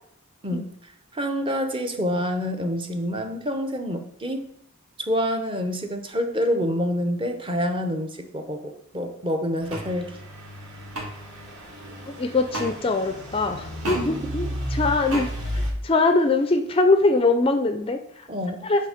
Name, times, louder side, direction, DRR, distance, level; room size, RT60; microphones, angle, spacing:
voice 1, 1.1-4.5 5.0-10.1 13.9-14.2 18.3-18.7, equal, 25° right, 5 dB, 0.6 m, -27 dB
Truck / Idling, 9.6-15.7, equal, 60° right, 2.7 m, -34 dB
sound 1, 9.7-9.9 10.9-11.1 12.5-12.7 13.8-14.0 15.1-15.3, right 1 dB, 75° right, 1.8 m, -30 dB
voice 2, 12.2-18.3 18.6-18.9, left 3 dB, 25° left, 7 dB, 0.4 m, -22 dB
7.6 x 3.6 x 4.9 m, 0.71 s
head